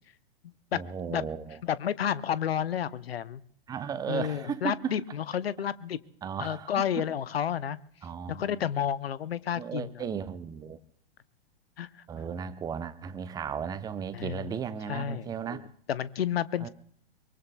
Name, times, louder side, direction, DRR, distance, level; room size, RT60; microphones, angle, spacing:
voice 1, 0.7-1.6 3.7-5.0 6.2-6.9 8.0-8.6 9.6-10.8 12.1-15.6 16.6-16.7, right 7 dB, 10° right, 14 dB, 0.7 m, -35 dB
voice 2, 1.6-3.4 4.1-6.0 6.4-7.8 8.3-10.0 11.8-11.9 14.1-14.5 14.9-15.6 15.9-16.7, left 9 dB, 65° left, 17 dB, 0.8 m, -31 dB
23.5 x 23.5 x 2.3 m, 0.64 s
figure-of-eight pair, 110°, 32 cm